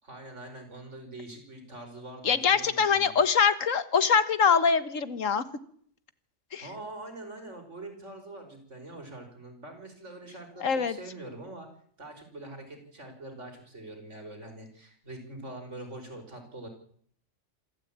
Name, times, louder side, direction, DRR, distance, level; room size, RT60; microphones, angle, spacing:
voice 1, 0.0-3.2 6.6-11.7 12.0-16.7, right 2 dB, 70° right, 5 dB, 5.3 m, -44 dB
voice 2, 2.2-5.4 6.5-6.7 10.6-11.0, left 6 dB, 85° left, 13 dB, 1.8 m, -24 dB
26.0 x 13.0 x 8.8 m, 0.62 s
omnidirectional pair, 1.3 m